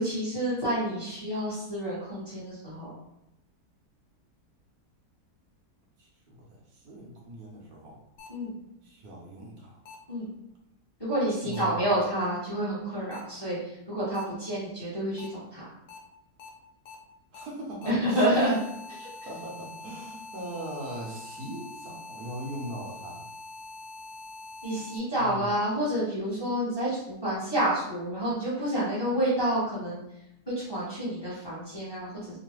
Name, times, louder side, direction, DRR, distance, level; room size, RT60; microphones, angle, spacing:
voice 1, 0.0-2.9 8.3-8.6 10.1-10.3 11.0-15.6 17.8-18.6 19.0-19.1 24.6-30.0 30.6-32.4, right 1 dB, 20° left, -9 dB, 0.9 m, -29 dB
voice 2, 6.0-8.0 8.8-9.8 11.4-11.8 17.3-18.2 19.2-23.3 25.2-25.5, right 1 dB, 70° right, -2 dB, 1.1 m, -40 dB
sound 1, 8.2-8.3 9.9-10.0 11.5-11.6 13.1-13.2 14.1-14.2 15.2-15.3 15.9-16.0 16.4-16.5 16.9-17.0 17.3-17.4 17.8-25.0, left 3 dB, 85° left, 1.2 m, -44 dB
3.0 x 2.2 x 3.0 m, 0.86 s
omnidirectional pair, 1.7 m